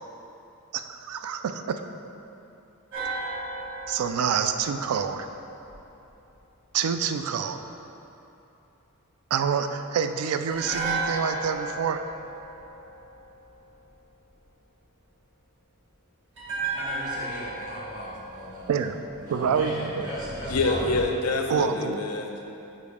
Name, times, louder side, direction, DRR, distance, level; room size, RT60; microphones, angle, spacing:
voice 1, 0.7-1.8 3.9-5.3 6.7-7.6 9.3-12.0 18.7-19.0 19.3-20.1 21.5-22.0, right 7 dB, 75° right, 8 dB, 0.3 m, -27 dB
sound 1, 2.9-6.1 10.5-13.7 16.4-19.6 19.8-20.0, right 3 dB, 55° right, 1.5 m, -34 dB
voice 2, 16.7-18.8 19.2-21.0, equal, 40° right, -7 dB, 1.4 m, -36 dB
voice 3, 20.5-22.5, left 3 dB, 90° left, 3 dB, 0.6 m, -26 dB
6.6 x 5.0 x 3.5 m, 2.9 s
head